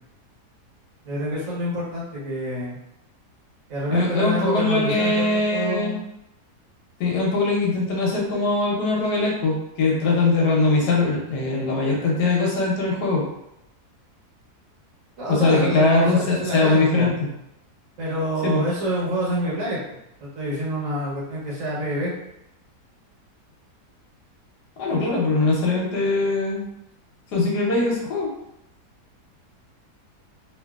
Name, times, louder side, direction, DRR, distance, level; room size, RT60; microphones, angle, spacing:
voice 1, 1.0-2.8 3.7-6.0 15.2-17.1 18.0-22.1, equal, 60° right, -6 dB, 1.2 m, -27 dB
voice 2, 3.9-6.0 7.0-13.2 15.3-17.3 18.4-18.7 24.8-26.7 27.3-28.3, left 3 dB, 80° left, -2 dB, 1.4 m, -21 dB
3.0 x 2.9 x 2.3 m, 0.85 s
omnidirectional pair, 1.8 m